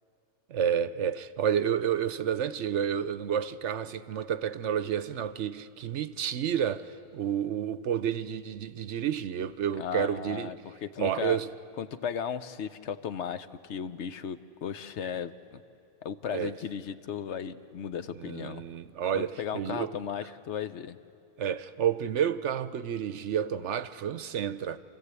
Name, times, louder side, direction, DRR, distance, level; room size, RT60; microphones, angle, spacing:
voice 1, 0.5-10.5 11.0-11.5 16.3-16.5 18.2-19.9 21.4-24.8, right 9 dB, 75° right, 1.0 m, -30 dB
voice 2, 9.8-11.4 11.8-15.6 16.0-18.6 19.1-21.0, left 8 dB, 70° left, 1.0 m, -36 dB
28.5 x 15.0 x 8.2 m
omnidirectional pair, 1.2 m